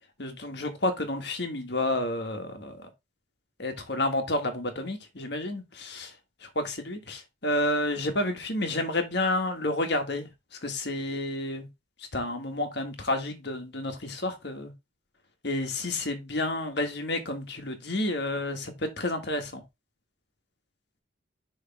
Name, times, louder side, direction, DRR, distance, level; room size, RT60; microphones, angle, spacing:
voice 1, 0.2-2.9 3.6-6.1 6.4-10.3 10.6-11.7 12.1-14.7 15.4-19.6, left 1 dB, 55° left, 1.6 m, -30 dB
6.3 x 3.2 x 5.9 m
head